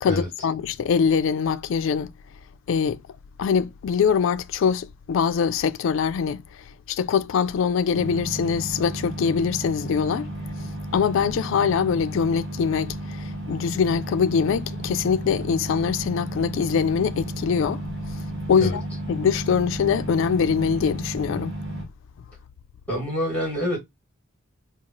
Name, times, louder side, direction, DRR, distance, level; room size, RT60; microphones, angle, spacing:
voice 1, 0.0-2.1 2.7-3.0 3.4-6.4 6.9-10.3 10.9-17.8 18.5-18.8 19.1-21.6, left 6 dB, 65° left, 0.3 m, -23 dB
sound 1, 7.9-21.9, right 1 dB, 60° right, 1.1 m, -33 dB
voice 2, 22.9-23.8, left 1 dB, 5° left, 2.1 m, -26 dB
3.7 x 2.3 x 3.0 m
head